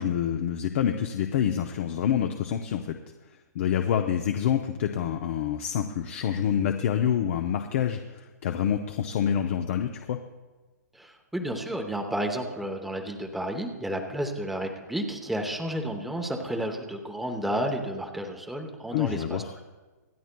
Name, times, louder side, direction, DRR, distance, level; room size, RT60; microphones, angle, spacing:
voice 1, 0.0-2.9 3.5-10.2 18.9-19.5, left 9 dB, 45° left, 5 dB, 0.7 m, -27 dB
voice 2, 10.9-19.4, right 1 dB, ahead, 3 dB, 0.8 m, -31 dB
26.0 x 9.0 x 2.2 m, 1.2 s
hypercardioid pair, 155°, 9 cm